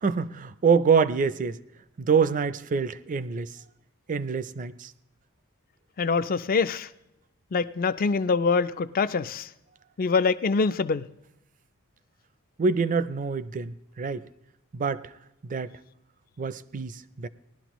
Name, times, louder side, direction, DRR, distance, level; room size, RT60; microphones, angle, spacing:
voice 1, 0.0-1.5 2.0-3.5 4.1-4.9 12.6-14.2 14.7-15.0 15.5-15.7 16.4-17.3, right 5 dB, 35° right, 0.4 m, -25 dB
voice 2, 6.0-6.9 7.5-9.5 10.0-11.1, left 4 dB, 40° left, 0.4 m, -24 dB
19.5 x 11.5 x 3.0 m
head